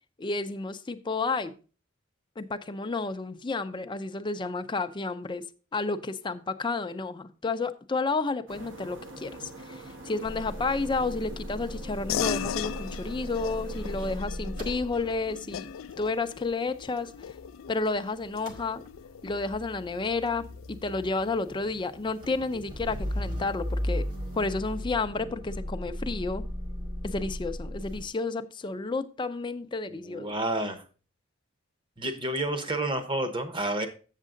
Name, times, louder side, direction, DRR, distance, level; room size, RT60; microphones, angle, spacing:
voice 1, 0.2-1.5 2.4-5.4 5.7-15.7 16.0-17.1 17.7-18.8 19.2-24.0 24.3-26.4 27.0-30.3, left 3 dB, 25° left, 10 dB, 0.5 m, -31 dB
sound 1, 8.5-14.2, right 2 dB, 70° right, 1.1 m, -44 dB
Motor vehicle (road) / Engine starting / Idling, 10.2-18.0 18.2-28.1, equal, 45° right, 1.8 m, -37 dB
sound 2, 12.1-22.0, left 9 dB, 80° left, 0.3 m, -38 dB
voice 2, 29.9-30.8 32.0-33.9, right 1 dB, 25° right, 7 dB, 1.0 m, -30 dB
7.4 x 7.3 x 3.8 m, 0.36 s
head